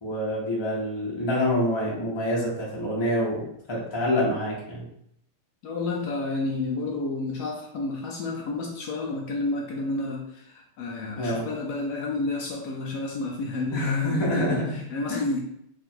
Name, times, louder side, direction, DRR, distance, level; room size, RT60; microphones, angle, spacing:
voice 1, 0.0-3.4 3.7-4.9 11.2-11.4 13.7-14.8 15.1-15.2, left 1 dB, 40° left, -4 dB, 0.4 m, -26 dB
voice 2, 5.6-15.4, left 2 dB, 80° left, -1 dB, 0.9 m, -30 dB
3.6 x 2.4 x 4.3 m, 0.74 s
omnidirectional pair, 2.3 m